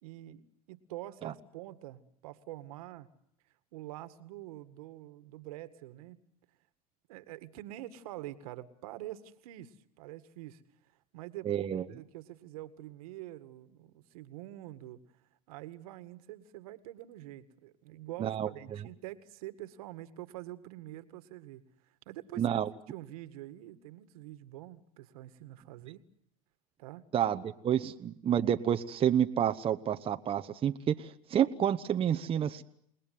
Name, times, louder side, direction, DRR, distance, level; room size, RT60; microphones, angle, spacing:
voice 1, 0.0-3.1 3.7-6.2 7.1-10.6 11.1-15.0 15.5-21.6 22.1-22.6 22.9-26.0 26.8-27.0, right 15 dB, 75° right, 12 dB, 2.0 m, -46 dB
voice 2, 11.5-11.8 18.2-18.8 22.4-22.7 27.1-32.6, right 9 dB, 30° right, 7 dB, 1.1 m, -29 dB
29.0 x 19.5 x 9.5 m, 0.74 s
hypercardioid pair, 105°, 19 cm